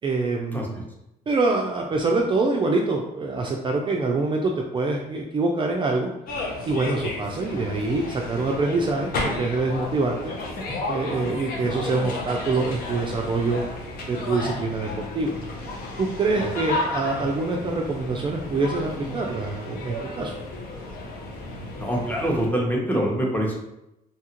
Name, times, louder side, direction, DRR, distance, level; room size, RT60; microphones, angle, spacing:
voice 1, 0.0-0.8 1.3-6.1 6.7-10.3 10.9-13.6 14.1-15.4 16.0-20.3, right 3 dB, 30° right, 0 dB, 0.4 m, -25 dB
sound 1, 6.3-22.5, left 2 dB, 65° left, 0.7 m, -33 dB
voice 2, 21.8-23.5, equal, 10° left, -2 dB, 0.8 m, -25 dB
2.8 x 2.3 x 2.9 m, 0.86 s
cardioid pair, 95°, 16 cm